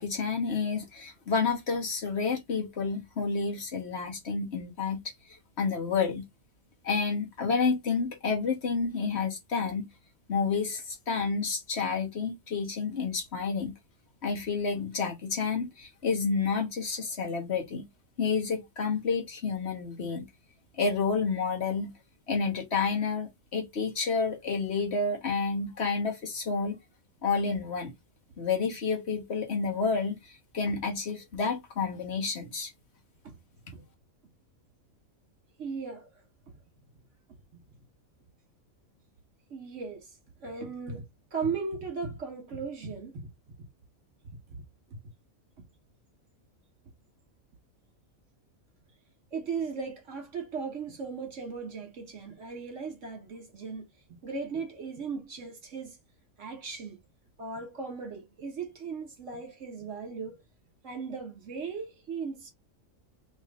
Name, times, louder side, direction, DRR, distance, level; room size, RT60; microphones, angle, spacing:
voice 1, 0.0-5.1 5.6-6.2 6.8-9.9 10.3-13.7 14.2-17.9 18.2-20.3 20.8-21.9 22.3-26.8 27.2-27.9 28.4-32.7, left 5 dB, 55° left, 1.3 m, -30 dB
voice 2, 35.6-36.5 39.5-40.1 40.4-41.0 41.3-43.3 43.6-43.7 44.5-44.6 49.3-56.0 56.4-57.0 57.4-60.4 60.8-62.5, right 5 dB, 65° right, 1.6 m, -37 dB
3.2 x 3.1 x 3.5 m
omnidirectional pair, 1.4 m